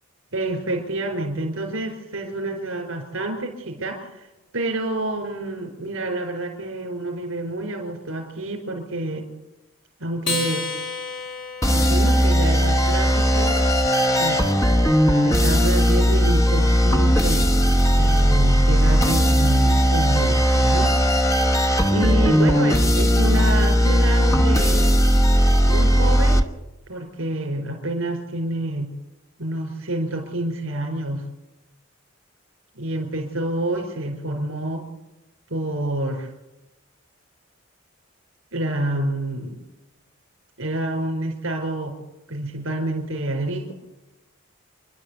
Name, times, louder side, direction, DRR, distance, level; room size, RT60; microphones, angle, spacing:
voice 1, 0.3-4.3 4.5-9.3 10.0-10.7 11.7-13.6 14.2-14.5 15.2-17.5 18.0-21.0 21.9-25.0 25.7-26.5 26.9-28.9 29.4-31.2 32.7-34.9 35.5-36.3 38.5-39.6 40.6-42.0 42.3-43.7, right 1 dB, 70° right, 2 dB, 4.7 m, -28 dB
Acoustic guitar, 10.2-12.9, left 4 dB, 45° left, 5.5 m, -31 dB
sound 1, 11.6-26.4, equal, 15° left, 1.0 m, -18 dB
28.5 x 12.0 x 8.1 m, 1.0 s
head